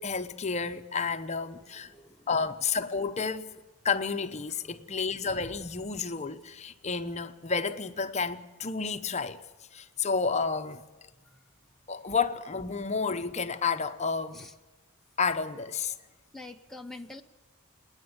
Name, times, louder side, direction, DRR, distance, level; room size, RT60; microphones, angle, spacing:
voice 1, 0.0-1.9 2.3-3.5 3.8-9.4 9.7-10.8 11.9-14.5 15.2-16.0, left 5 dB, 30° left, 0.8 m, -31 dB
voice 2, 1.6-2.3 4.7-4.8 14.3-14.5 16.3-17.2, left 2 dB, ahead, 0.7 m, -46 dB
28.5 x 9.8 x 9.7 m
head